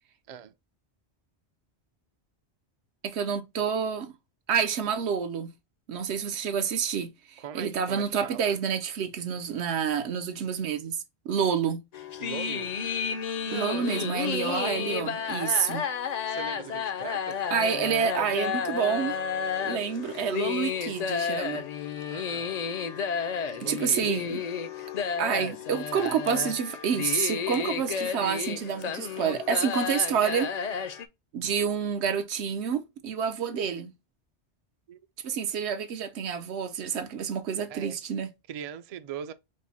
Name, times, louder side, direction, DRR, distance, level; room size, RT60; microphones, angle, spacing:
voice 1, 3.0-4.1 4.5-5.5 5.9-11.8 13.5-15.8 17.5-19.2 19.6-21.6 23.6-24.4 25.2-30.5 31.3-33.9 35.2-38.3, right 7 dB, 85° right, 1.0 m, -28 dB
voice 2, 7.4-8.6 12.2-12.7 13.4-14.9 16.3-17.4 22.1-22.6 23.6-24.3 34.9-35.0 37.7-38.0 38.5-39.3, right 8 dB, 60° right, 0.4 m, -41 dB
sound 1, 11.9-31.1, left 7 dB, 55° left, 0.5 m, -32 dB
5.0 x 2.0 x 4.0 m
omnidirectional pair, 1.1 m